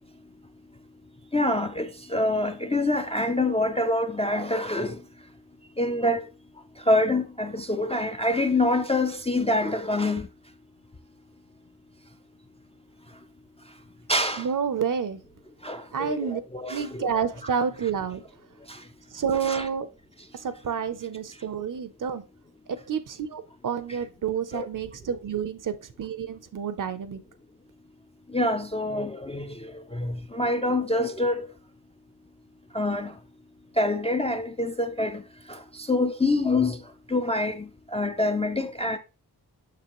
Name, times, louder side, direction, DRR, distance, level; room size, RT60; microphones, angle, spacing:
voice 1, 1.3-5.0 5.8-6.3 6.9-10.3 14.1-14.5 15.6-17.5 18.7-18.8 19.4-19.7 24.5-24.7 28.3-31.5 32.7-33.1 33.8-35.2 35.5-36.8 37.1-39.0, left 2 dB, 15° left, 0.3 m, -26 dB
voice 2, 14.4-15.2 15.9-16.4 16.7-18.2 19.1-19.9 20.4-22.2 22.7-27.2, right 7 dB, 50° right, 0.6 m, -29 dB
6.7 x 5.8 x 2.9 m
wide cardioid pair, 155°, 42 cm